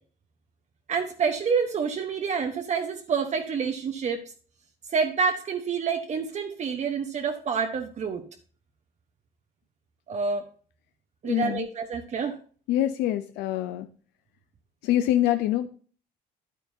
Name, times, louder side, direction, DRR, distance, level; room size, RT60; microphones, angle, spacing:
voice 1, 0.9-4.2 4.9-8.2 10.1-10.4 11.2-12.4, right 5 dB, 45° right, 5 dB, 1.0 m, -28 dB
voice 2, 11.2-11.7 12.7-13.9 14.8-15.8, left 13 dB, 85° left, 10 dB, 0.6 m, -25 dB
9.9 x 9.2 x 2.7 m, 0.41 s
cardioid pair, 110°, 17 cm